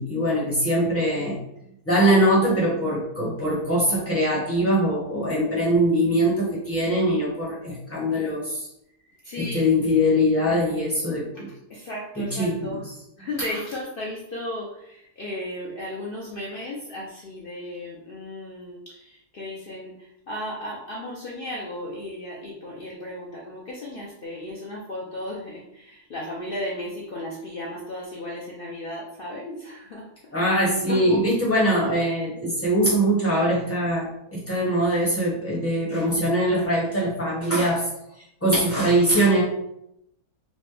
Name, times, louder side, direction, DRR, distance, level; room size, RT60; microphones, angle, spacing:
voice 1, 0.0-1.4 1.8-8.7 9.4-11.5 12.1-12.8 30.3-37.9 38.4-39.4, equal, 10° left, -7 dB, 1.1 m, -22 dB
voice 2, 9.2-9.6 11.7-12.8 13.2-30.1 30.9-31.2, left 1 dB, 70° left, -4 dB, 0.5 m, -35 dB
4.2 x 2.1 x 3.3 m, 0.78 s
omnidirectional pair, 1.7 m